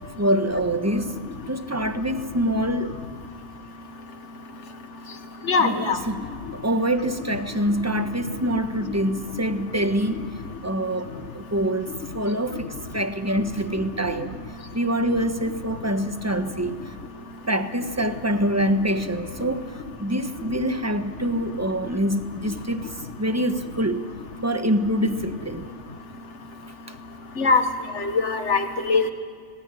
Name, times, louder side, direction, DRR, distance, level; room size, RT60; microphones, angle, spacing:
voice 1, 0.2-1.1 1.5-2.9 5.6-6.3 6.5-10.2 10.6-12.7 12.9-14.4 14.7-16.8 17.5-22.9 23.2-24.0 24.4-25.7, right 1 dB, 15° right, 8 dB, 1.2 m, -25 dB
voice 2, 5.5-6.0 27.4-27.6 28.0-29.1, left 4 dB, 85° left, 8 dB, 1.9 m, -21 dB
29.5 x 19.5 x 9.8 m, 2.1 s
omnidirectional pair, 1.2 m